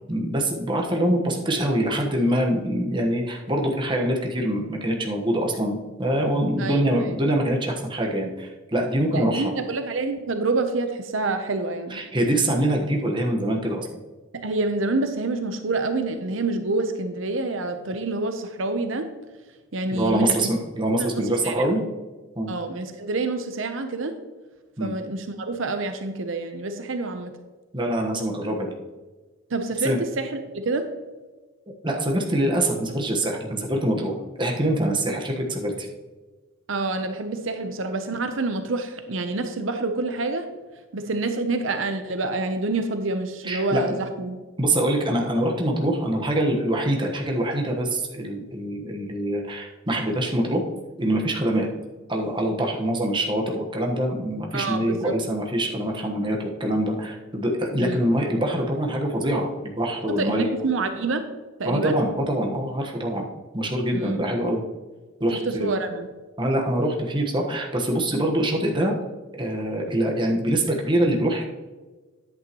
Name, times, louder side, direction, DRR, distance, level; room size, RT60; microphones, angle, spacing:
voice 1, 0.0-9.5 11.9-13.9 19.9-21.8 22.4-22.5 24.8-24.9 27.7-28.7 29.8-30.0 31.8-35.9 43.4-44.0 44.6-50.6 51.0-51.7 52.1-60.5 61.6-63.3 63.5-64.6 65.2-65.7 66.4-68.9 69.4-71.4, right 1 dB, 25° right, 0 dB, 1.3 m, -24 dB
voice 2, 9.1-12.0 14.3-19.1 19.7-20.5 21.0-21.7 22.5-24.2 24.8-27.4 29.5-30.9 36.7-40.5 40.9-44.4 54.5-55.2 57.8-58.0 60.1-61.3 61.6-62.0 63.9-64.2 65.3-66.1, right 3 dB, 75° right, 7 dB, 0.8 m, -27 dB
10.0 x 8.6 x 3.0 m, 1.3 s
head